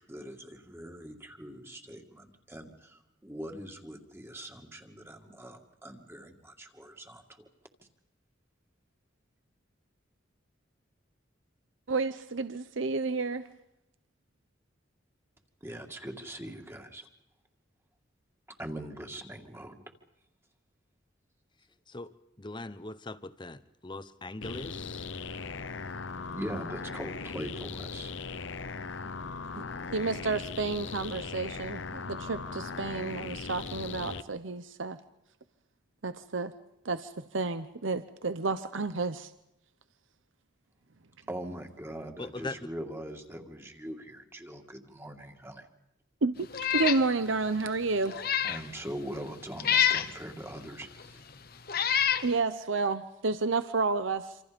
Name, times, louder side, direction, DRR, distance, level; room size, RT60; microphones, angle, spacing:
voice 1, 0.0-7.5 15.6-17.1 18.5-19.8 26.3-28.1 41.3-45.7 48.4-51.2, right 1 dB, 15° right, 2.3 m, -42 dB
voice 2, 11.9-13.5 29.9-35.0 36.0-36.5 36.8-39.3 46.2-48.1 52.2-54.4, right 3 dB, 80° right, 0.9 m, -31 dB
voice 3, 22.4-25.1 42.2-42.7, left 2 dB, 25° left, 1.0 m, -41 dB
sound 1, 24.4-34.2, left 4 dB, 75° left, 0.9 m, -39 dB
Meow, 46.5-47.0 47.5-47.6 48.1-48.6 49.6-50.1 51.0-51.1 51.7-52.3, left 9 dB, 50° left, 1.1 m, -26 dB
27.5 x 27.0 x 5.3 m
head